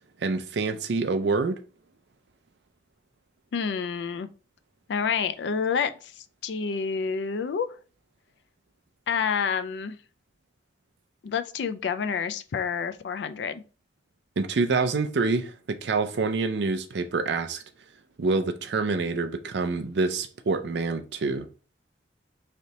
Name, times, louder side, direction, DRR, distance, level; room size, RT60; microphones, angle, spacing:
voice 1, 0.2-1.6 14.4-15.5 15.8-17.6 18.2-21.5, right 3 dB, 70° right, 0.5 m, -26 dB
voice 2, 3.5-4.3 4.9-6.1 6.4-7.7 9.1-10.0 11.2-13.6, left 6 dB, 70° left, 0.4 m, -28 dB
3.3 x 2.8 x 3.9 m
head